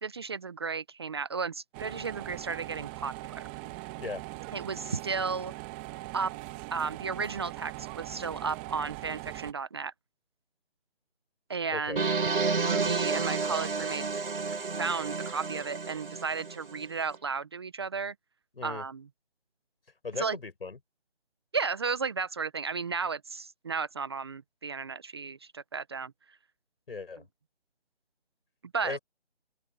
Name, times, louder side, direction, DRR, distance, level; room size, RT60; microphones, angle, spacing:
voice 1, 0.0-3.5 4.5-5.5 6.1-6.3 6.7-9.9 11.5-12.1 12.6-14.1 14.4-14.5 14.8-18.1 18.6-19.0 20.2-20.4 21.5-26.1 28.7-29.0, right 5 dB, 25° right, 0.9 m, -34 dB
sound 1, 1.7-9.5, right 19 dB, 10° right, 1.4 m, -41 dB
voice 2, 11.7-12.0 18.5-18.8 20.0-20.8 26.9-27.2 28.8-29.0, left 4 dB, 65° left, 7.0 m, -37 dB
sound 2, 12.0-16.9, right 4 dB, 60° right, 5.9 m, -31 dB
open air
figure-of-eight pair, 165°, 32 cm